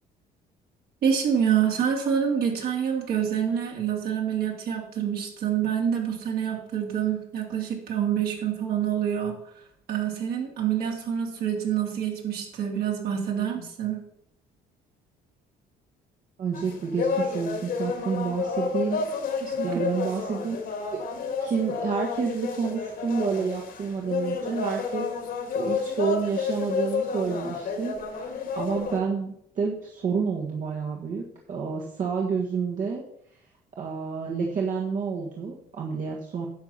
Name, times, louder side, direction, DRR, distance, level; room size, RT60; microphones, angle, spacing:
voice 1, 1.0-9.4 9.9-14.0 19.4-19.7, right 8 dB, 65° right, 1 dB, 2.9 m, -27 dB
voice 2, 16.4-19.0 19.6-20.6 20.9-21.0 21.4-25.1 25.5-31.2 31.5-33.0 33.8-36.5, right 5 dB, 50° right, -1 dB, 1.6 m, -29 dB
sound 1, 16.5-29.0, left 5 dB, 60° left, 2.1 m, -30 dB
10.5 x 6.8 x 5.7 m, 0.73 s
cardioid pair, 110°, 17 cm